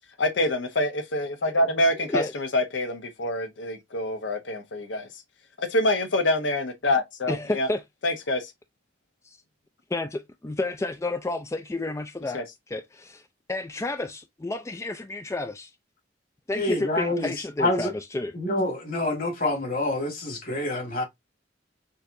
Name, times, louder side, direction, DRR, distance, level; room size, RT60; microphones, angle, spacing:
voice 1, 0.2-5.1 5.6-7.7 8.0-8.5 12.3-12.4, left 1 dB, 80° left, 0.8 m, -26 dB
voice 2, 7.3-7.8 9.2-9.4 9.9-15.7 16.5-18.3, left 2 dB, 15° left, 0.3 m, -31 dB
voice 3, 16.5-17.9 18.3-21.0, left 2 dB, 50° left, 1.8 m, -27 dB
6.5 x 2.8 x 2.5 m
head